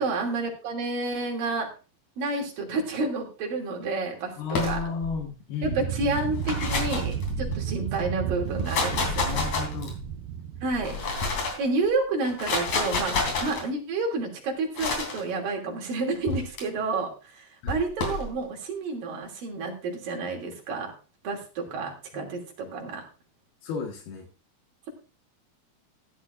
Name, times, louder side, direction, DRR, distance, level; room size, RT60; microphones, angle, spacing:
voice 1, 0.0-1.7 2.2-4.8 5.6-9.4 10.6-11.0 11.6-20.9 21.2-23.0, right 3 dB, 65° right, 1 dB, 4.5 m, -30 dB
voice 2, 4.4-5.8 9.3-10.0 17.6-17.7 22.1-22.3 23.6-24.3, left 5 dB, 80° left, 2 dB, 3.7 m, -33 dB
sound 1, 4.5-5.2 6.2-7.7 8.5-10.1 10.7-11.7 12.2-13.6 14.8-15.2 16.3-16.6 17.7-18.3, left 3 dB, 50° left, 4.3 m, -29 dB
sound 2, 5.6-11.4, right 9 dB, 80° right, 1.9 m, -32 dB
15.0 x 12.0 x 2.6 m, 0.33 s
omnidirectional pair, 4.5 m